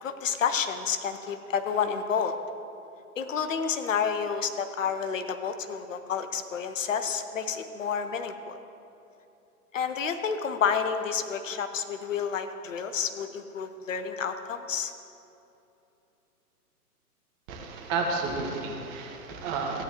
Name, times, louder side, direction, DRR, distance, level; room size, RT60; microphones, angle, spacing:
voice 1, 0.0-2.4 3.2-8.6 9.7-14.9, left 6 dB, 60° left, 8 dB, 0.8 m, -30 dB
voice 2, 17.5-19.8, right 4 dB, 25° right, 1 dB, 1.3 m, -31 dB
15.0 x 9.2 x 2.9 m, 2.8 s
figure-of-eight pair, 120°, 45 cm